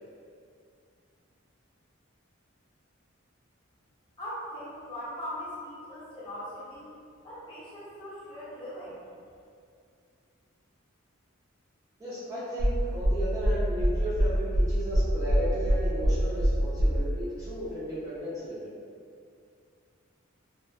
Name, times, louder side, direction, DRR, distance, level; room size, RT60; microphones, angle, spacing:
voice 1, 4.2-6.9 7.2-9.0, equal, 25° left, -9 dB, 0.6 m, -40 dB
voice 2, 12.0-18.7, equal, 15° right, -11 dB, 0.5 m, -35 dB
sound 1, 12.6-17.0, equal, 70° right, 0.5 m, -24 dB
2.5 x 2.3 x 2.2 m, 2.3 s
head